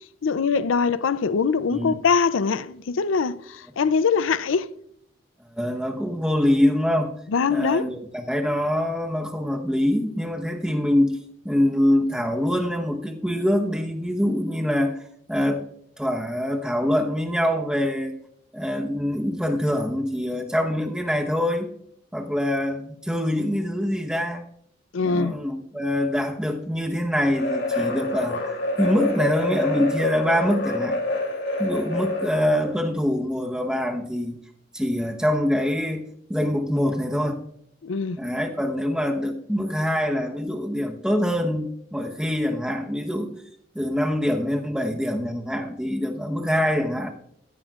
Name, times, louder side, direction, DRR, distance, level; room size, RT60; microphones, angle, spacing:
voice 1, 0.2-4.7 7.3-7.9 24.9-25.3 37.8-38.2, left 5 dB, 85° left, 0.5 m, -23 dB
voice 2, 5.5-7.1 7.5-11.1 11.4-15.0 15.3-15.6 16.0-18.1 18.5-21.7 22.1-24.4 25.0-31.0 31.6-34.4 34.7-37.4 38.2-43.4 43.7-47.1, left 1 dB, 5° right, 1.0 m, -24 dB
sound 1, 27.3-32.8, left 2 dB, 60° left, 3.0 m, -27 dB
15.5 x 14.0 x 2.4 m
head